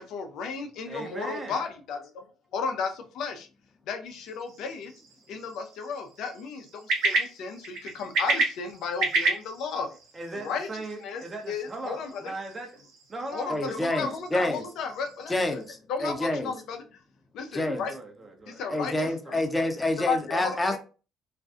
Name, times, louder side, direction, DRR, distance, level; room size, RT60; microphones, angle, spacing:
voice 1, 0.0-3.5 3.9-4.9 5.3-9.9 10.4-10.7 11.0-12.3 13.3-15.6 15.9-16.8 17.3-17.9 18.5-19.4 20.0-20.8, left 5 dB, 70° left, 0.4 m, -34 dB
voice 2, 0.9-1.7 10.1-12.8 13.1-14.1 17.6-19.4, right 2 dB, 30° right, 0.8 m, -39 dB
sound 1, 4.0-15.7, right 2 dB, 70° right, 0.8 m, -33 dB
voice 3, 13.5-14.6 15.3-16.5 17.5-17.8 18.7-20.8, left 1 dB, 15° left, 0.7 m, -28 dB
2.5 x 2.3 x 2.4 m
hypercardioid pair, 60°, 0 cm